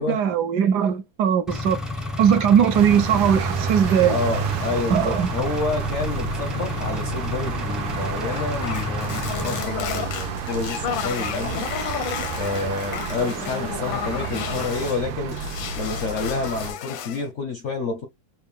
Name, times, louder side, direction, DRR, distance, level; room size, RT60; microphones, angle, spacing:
voice 1, 0.0-1.8 2.2-4.2 4.9-5.3, right 8 dB, 70° right, 1.1 m, -19 dB
Engine, 1.5-9.6, left 2 dB, ahead, 0.4 m, -31 dB
sound 1, 2.7-16.7, right 7 dB, 85° right, 1.5 m, -30 dB
voice 2, 4.0-11.7 12.3-15.4 15.7-18.1, left 4 dB, 65° left, 0.7 m, -29 dB
sound 2, 8.3-15.0 15.3-17.3, left 8 dB, 90° left, 1.5 m, -32 dB
4.3 x 2.4 x 3.5 m
omnidirectional pair, 2.1 m